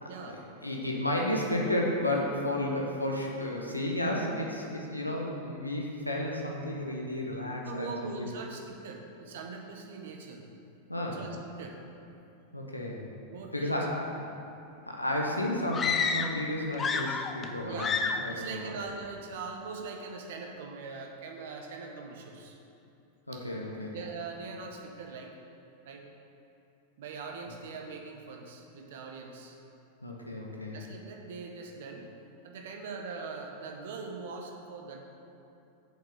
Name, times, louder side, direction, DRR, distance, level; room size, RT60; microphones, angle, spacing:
voice 1, 0.0-0.4 0.6-8.3 10.9-11.2 12.5-13.1 13.5-14.1 14.8-17.9 18.2-18.8 23.3-24.0 30.0-30.8, left 1 dB, 85° left, -1 dB, 1.0 m, -32 dB
voice 2, 7.6-10.4 11.1-11.8 13.3-14.0 14.3-14.4 17.6-17.9 18.3-22.6 23.3-23.5 23.9-25.3 25.8-26.0 27.0-29.6 30.7-32.1 32.4-35.0, right 4 dB, 55° right, 2 dB, 1.2 m, -42 dB
sound 1, 15.7-16.5 16.7-17.5 17.8-18.3, left 5 dB, 20° left, 0.5 m, -29 dB
7.8 x 5.7 x 6.6 m, 2.7 s
figure-of-eight pair, 90°, 0 cm